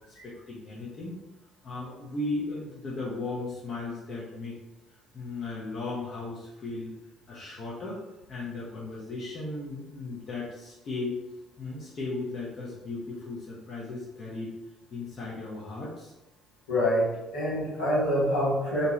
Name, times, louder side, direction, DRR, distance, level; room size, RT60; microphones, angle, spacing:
voice 1, 0.1-1.2 1.6-4.5 5.1-6.9 7.3-8.0 8.3-11.2 11.6-14.5 14.9-16.1, left 3 dB, 50° left, -6 dB, 0.8 m, -36 dB
voice 2, 16.7-18.9, equal, 80° left, -8 dB, 1.2 m, -26 dB
2.6 x 2.3 x 3.0 m, 0.96 s
hypercardioid pair, 50°, 0 cm